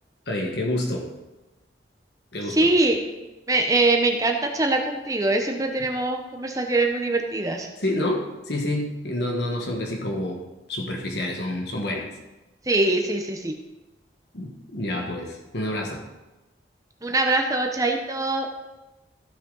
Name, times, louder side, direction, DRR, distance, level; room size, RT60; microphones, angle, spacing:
voice 1, 0.3-1.1 2.3-2.7 7.8-12.1 14.3-16.0, left 1 dB, 65° left, 1 dB, 1.5 m, -28 dB
voice 2, 2.5-3.0 3.5-7.7 12.7-13.5 17.0-18.5, right 2 dB, 20° right, 3 dB, 0.8 m, -23 dB
14.5 x 6.4 x 4.0 m, 1.1 s
head